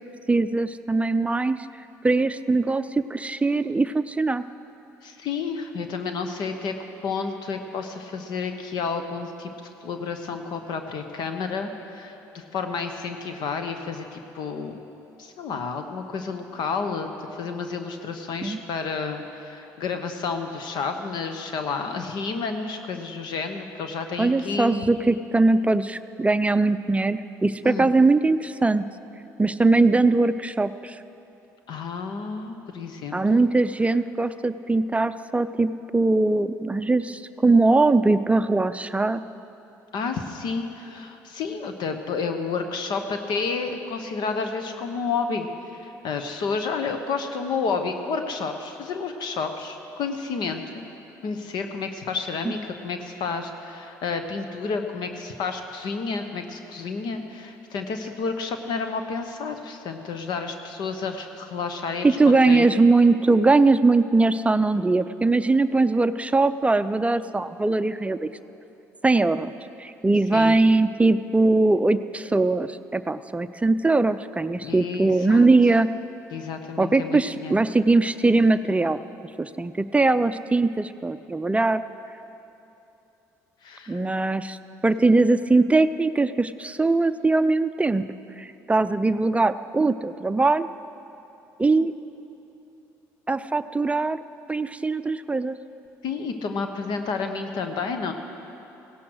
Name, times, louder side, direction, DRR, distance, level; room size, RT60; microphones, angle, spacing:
voice 1, 0.3-1.7 2.0-4.4 18.4-18.6 24.2-28.9 29.4-31.0 33.1-39.2 62.0-68.3 69.0-69.5 69.8-75.9 76.8-79.0 79.4-81.8 83.9-84.6 84.8-88.0 88.4-90.7 91.6-91.9 93.3-94.2 94.5-95.6, right 3 dB, 15° right, 12 dB, 0.5 m, -21 dB
voice 2, 5.0-6.7 7.0-9.5 9.8-14.8 15.2-24.8 27.6-28.0 31.7-33.5 39.9-50.8 51.2-62.7 70.3-70.6 74.6-75.5 76.3-77.6 83.6-84.0 96.0-98.1, left 5 dB, 65° left, 6 dB, 1.1 m, -30 dB
16.5 x 11.5 x 6.4 m, 2.9 s
hypercardioid pair, 60°, 8 cm